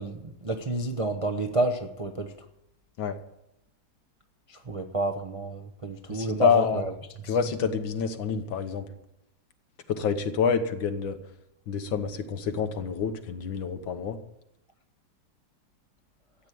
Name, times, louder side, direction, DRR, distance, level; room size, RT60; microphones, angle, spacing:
voice 1, 0.0-2.3 4.5-6.9 7.3-7.4, right 2 dB, 35° right, 4 dB, 0.5 m, -30 dB
voice 2, 6.1-6.8 7.2-8.9 9.9-11.2 11.7-14.2, left 6 dB, 75° left, 8 dB, 1.9 m, -27 dB
14.0 x 8.5 x 9.3 m, 0.81 s
omnidirectional pair, 2.2 m